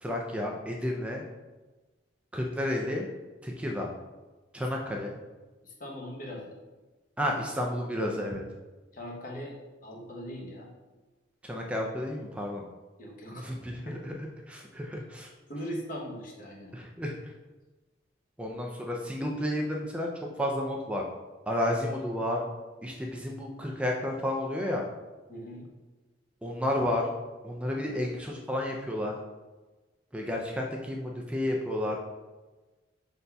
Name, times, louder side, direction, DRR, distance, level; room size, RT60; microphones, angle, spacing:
voice 1, 0.0-1.2 2.3-3.0 3.4-3.9 4.5-5.1 7.2-8.4 11.4-12.6 13.3-15.3 16.7-17.3 18.4-20.1 20.4-21.0 21.5-22.4 22.8-24.9 26.4-27.1 27.4-29.1 30.1-32.0, left 1 dB, 5° right, 0 dB, 0.4 m, -31 dB
voice 2, 5.6-6.6 8.9-10.7 13.0-14.1 15.5-16.7 25.3-25.7, equal, 50° left, -1 dB, 0.9 m, -40 dB
5.4 x 3.9 x 2.3 m, 1.2 s
head